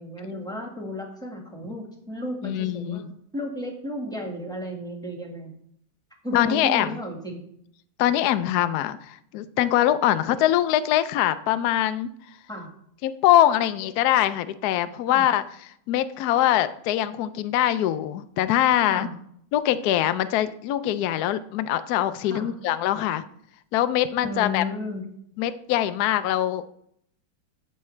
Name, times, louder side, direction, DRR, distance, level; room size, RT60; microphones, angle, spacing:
voice 1, 0.0-3.1 3.3-5.5 6.2-7.4 12.5-12.7 15.1-15.2 18.9-19.1 22.3-22.5 24.2-25.1, left 1 dB, ahead, 0 dB, 1.4 m, -33 dB
voice 2, 2.4-3.0 6.3-6.9 8.0-12.1 13.0-15.4 15.9-19.1 19.5-23.2 23.7-24.6 25.4-26.7, left 12 dB, 80° left, 12 dB, 0.8 m, -23 dB
14.0 x 5.6 x 3.2 m, 0.68 s
omnidirectional pair, 2.3 m